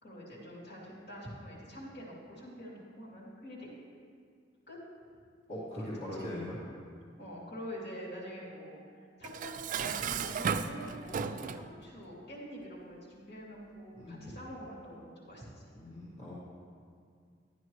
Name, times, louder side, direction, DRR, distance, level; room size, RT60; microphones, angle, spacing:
voice 1, 0.0-3.7 4.7-4.8 5.8-6.2 7.2-8.8 9.2-15.4, equal, 55° left, -6 dB, 3.0 m, -45 dB
voice 2, 5.5-6.6 13.9-14.3 15.7-16.3, left 1 dB, 35° left, -10 dB, 2.3 m, -41 dB
Dishes pots and pans, 9.2-11.7, right 6 dB, 45° right, 0.3 m, -35 dB
12.5 x 10.5 x 3.2 m, 2.1 s
head